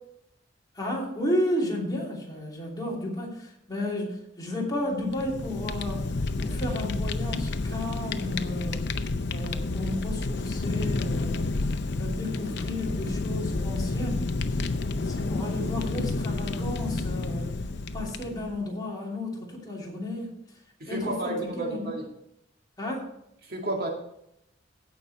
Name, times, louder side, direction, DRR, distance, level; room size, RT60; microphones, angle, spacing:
voice 1, 0.7-6.1 6.4-9.0 9.3-14.3 15.0-17.5 17.9-20.4 20.9-21.9 22.8-23.1, left 1 dB, 20° left, -3 dB, 3.0 m, -33 dB
Fire, 5.0-18.6, left 3 dB, 60° left, 0.7 m, -30 dB
voice 2, 20.8-22.1 23.4-23.9, right 1 dB, 50° right, 1 dB, 2.2 m, -31 dB
16.5 x 5.9 x 4.1 m, 0.77 s
head